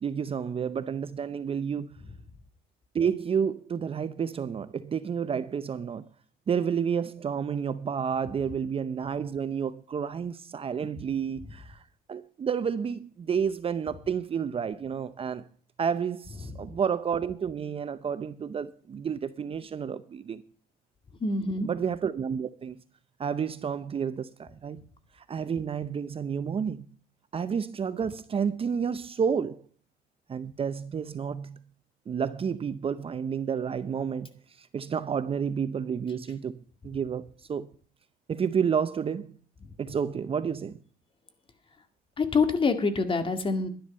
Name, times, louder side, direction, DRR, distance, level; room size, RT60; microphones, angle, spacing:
voice 1, 0.0-2.0 2.9-6.1 6.5-11.8 12.1-15.5 15.8-20.4 21.6-22.8 23.2-24.9 25.3-26.9 27.3-29.6 30.3-31.6 32.1-34.3 34.6-37.7 38.3-39.4 39.8-40.8, right 7 dB, 35° right, 0.7 m, -30 dB
voice 2, 21.2-21.7 42.2-43.7, left 4 dB, 30° left, 2.1 m, -25 dB
11.5 x 10.5 x 5.5 m
cardioid pair, 110°, 17 cm